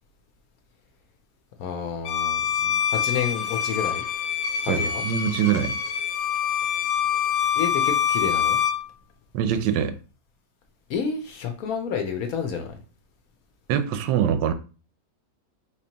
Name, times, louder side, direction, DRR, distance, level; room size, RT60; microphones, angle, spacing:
voice 1, 1.6-4.0 4.6-5.0 7.6-8.6 10.9-12.7, left 6 dB, 65° left, 0.9 m, -30 dB
Bowed string instrument, 2.0-8.8, left 8 dB, 85° left, 1.3 m, -25 dB
voice 2, 4.6-5.7 9.3-9.9 13.7-14.5, right 9 dB, 85° right, 1.2 m, -23 dB
4.2 x 3.0 x 2.8 m
omnidirectional pair, 1.9 m